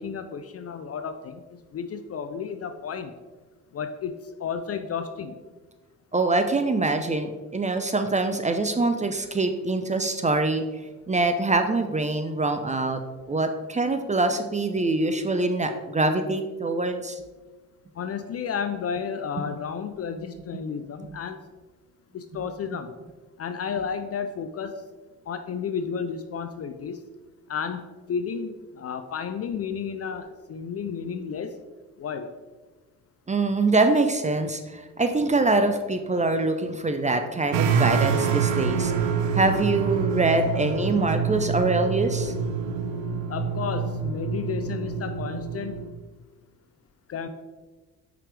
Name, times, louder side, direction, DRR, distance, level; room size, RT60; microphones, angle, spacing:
voice 1, 0.0-3.1 3.7-5.4 18.0-21.4 22.1-22.9 23.4-24.8 25.3-27.0 27.5-31.6 32.0-32.3 43.3-45.8 47.1-47.3, left 6 dB, 35° left, 8 dB, 0.4 m, -32 dB
voice 2, 6.1-10.7 11.1-13.0 13.3-17.2 33.3-38.9 39.3-42.3, right 2 dB, 15° right, 7 dB, 0.5 m, -24 dB
sound 1, 37.5-45.9, right 6 dB, 80° right, 0.7 m, -26 dB
5.7 x 4.9 x 3.3 m, 1.3 s
hypercardioid pair, 50°, 44 cm